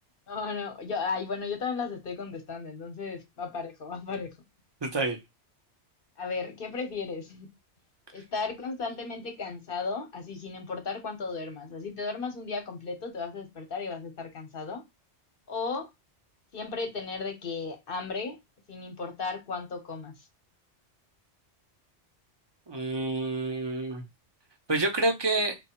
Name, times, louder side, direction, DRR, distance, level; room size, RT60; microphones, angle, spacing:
voice 1, 0.3-4.3 6.2-7.5 8.1-14.8 15.5-15.9 16.5-18.4 18.7-20.2, left 4 dB, 55° left, 1.0 m, -35 dB
voice 2, 4.8-5.2 22.7-24.0 24.7-25.6, right 2 dB, 25° right, 0.7 m, -28 dB
3.2 x 2.3 x 4.3 m
omnidirectional pair, 1.2 m